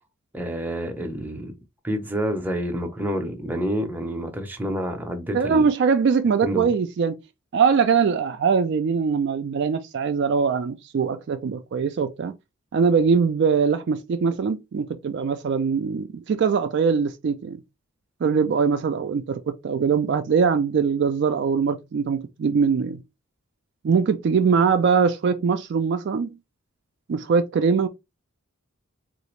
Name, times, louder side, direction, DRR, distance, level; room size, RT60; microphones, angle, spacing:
voice 1, 0.3-1.5 1.8-5.7 6.4-6.7, equal, 10° right, 0.6 m, -28 dB
voice 2, 5.3-7.2 7.5-12.3 12.7-17.6 18.2-23.0 23.8-26.4 27.1-27.9, right 5 dB, 55° right, 0.3 m, -22 dB
3.7 x 2.5 x 3.1 m
head